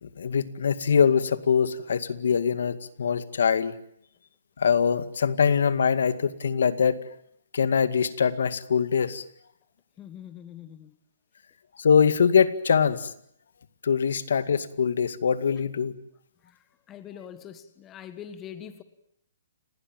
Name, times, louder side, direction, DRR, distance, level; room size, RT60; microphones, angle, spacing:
voice 1, 0.0-3.8 4.6-7.0 7.5-9.2 11.8-13.1 13.8-15.9, left 6 dB, 75° left, 12 dB, 2.1 m, -23 dB
voice 2, 10.0-11.0 16.4-18.8, left 9 dB, 15° left, 10 dB, 1.6 m, -43 dB
29.5 x 20.0 x 9.2 m, 0.72 s
hypercardioid pair, 160°, 0 cm